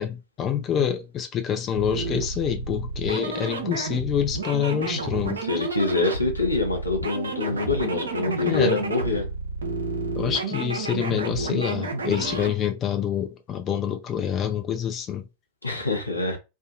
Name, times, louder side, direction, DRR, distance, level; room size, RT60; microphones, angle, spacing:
voice 1, 0.0-5.4 8.5-8.8 10.1-15.2, left 9 dB, 30° left, 0.4 m, -26 dB
sound 1, 1.7-12.5, right 3 dB, 70° right, 0.5 m, -31 dB
voice 2, 5.5-9.3 15.6-16.4, left 3 dB, 85° left, 0.7 m, -25 dB
2.6 x 2.3 x 2.4 m
figure-of-eight pair, 90°, 0 cm